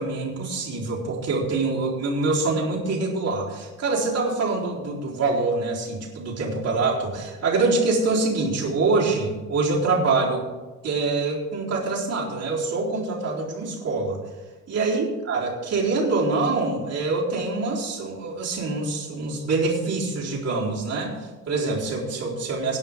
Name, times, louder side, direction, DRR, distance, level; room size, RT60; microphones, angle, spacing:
voice 1, 0.0-10.5 10.8-14.2 14.7-22.8, right 3 dB, 45° right, -4 dB, 3.9 m, -25 dB
17.5 x 10.0 x 3.7 m, 1.2 s
cardioid pair, 140°, 36 cm